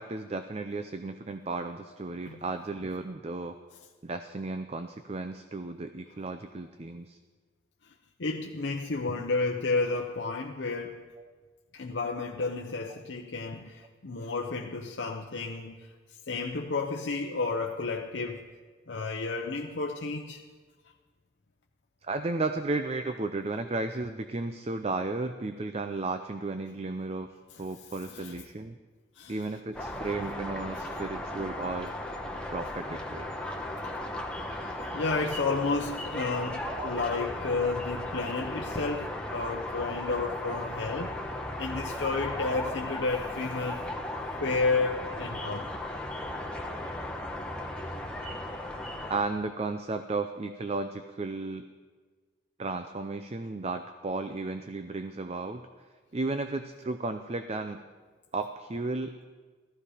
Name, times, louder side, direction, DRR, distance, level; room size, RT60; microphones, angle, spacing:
voice 1, 0.0-3.6 4.0-7.2 22.0-27.3 27.6-28.8 29.3-31.9 32.5-33.3 36.7-36.9 49.1-51.7 52.6-55.7 56.1-57.8 58.3-59.2, right 3 dB, 35° right, 8 dB, 0.5 m, -34 dB
voice 2, 8.2-11.0 11.7-15.9 16.3-18.4 18.9-20.4 28.1-28.3 29.2-29.4 30.8-30.9 33.7-34.0 34.9-41.2 41.6-43.9 44.4-45.7, left 3 dB, 70° left, 1 dB, 0.8 m, -31 dB
sound 1, 29.7-49.2, left 1 dB, 5° left, 1.1 m, -36 dB
15.0 x 14.0 x 5.0 m, 1.4 s
head